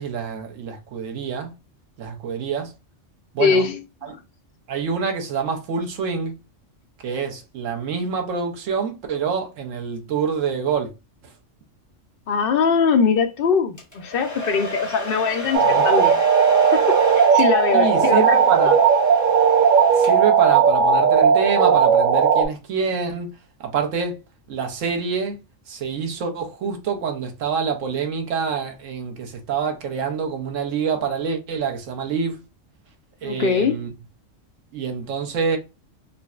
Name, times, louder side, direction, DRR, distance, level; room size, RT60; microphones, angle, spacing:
voice 1, 0.0-1.5 2.0-2.7 3.3-3.7 4.0-4.1 4.7-6.4 7.0-10.9 11.2-11.3 15.6-15.8 17.7-18.8 20.0-24.2 24.5-25.4 25.7-32.4 33.2-33.9 34.7-35.6, right 6 dB, 80° right, 1.2 m, -26 dB
voice 2, 3.4-3.8 4.1-4.2 12.3-16.2 16.7-18.4 33.2-33.7, left 5 dB, 60° left, 0.6 m, -21 dB
Domestic sounds home sounds, 13.8-20.5, left 1 dB, 20° left, 0.7 m, -33 dB
sound 1, 15.5-22.5, right 6 dB, 50° right, 0.7 m, -16 dB
3.9 x 2.1 x 2.3 m
omnidirectional pair, 1.3 m